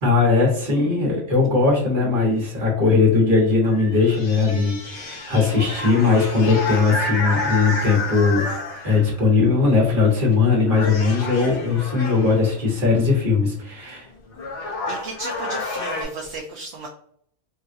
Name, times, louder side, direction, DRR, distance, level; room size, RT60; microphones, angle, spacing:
voice 1, 0.0-8.5 8.8-14.1, left 4 dB, 50° right, -3 dB, 1.3 m, -19 dB
sound 1, 3.6-9.2 10.1-10.4 10.7-12.5 13.9-14.0 14.3-16.0, left 3 dB, 70° left, 1.2 m, -30 dB
voice 2, 14.9-16.9, right 3 dB, 70° right, 1 dB, 0.8 m, -34 dB
3.6 x 2.3 x 2.5 m, 0.65 s
omnidirectional pair, 1.2 m